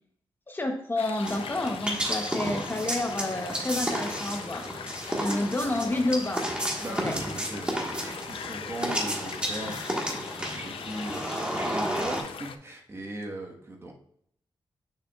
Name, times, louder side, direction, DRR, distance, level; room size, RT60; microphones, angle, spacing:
voice 1, 0.5-4.7 5.2-6.5 6.9-7.1, left 2 dB, 25° left, 4 dB, 0.8 m, -29 dB
sound 1, 1.0-12.6, left 7 dB, 85° left, 0.5 m, -41 dB
sound 2, 1.3-12.2, right 1 dB, 10° right, 1.4 m, -32 dB
voice 2, 5.0-6.0 6.8-10.3 10.5-13.9, right 1 dB, 30° right, 1 dB, 1.2 m, -39 dB
6.9 x 5.9 x 2.3 m, 0.67 s
wide cardioid pair, 115°, 9 cm